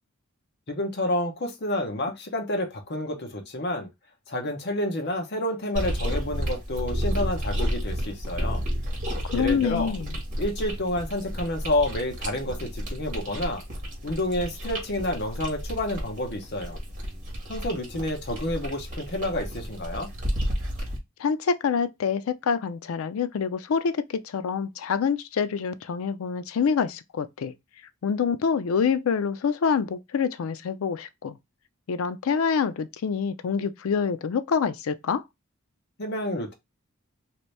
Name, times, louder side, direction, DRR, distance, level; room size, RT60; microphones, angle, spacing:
voice 1, 0.7-3.9 4.3-8.7 9.3-9.9 10.4-13.6 14.0-16.8 17.5-20.1 36.0-36.5, left 1 dB, 50° left, 0.9 m, -29 dB
sound 1, 5.7-21.0, equal, 40° right, 1.3 m, -32 dB
voice 2, 9.2-10.2 21.2-27.5 28.0-31.4 31.9-35.2, left 6 dB, 80° left, 0.4 m, -26 dB
2.9 x 2.6 x 3.1 m
head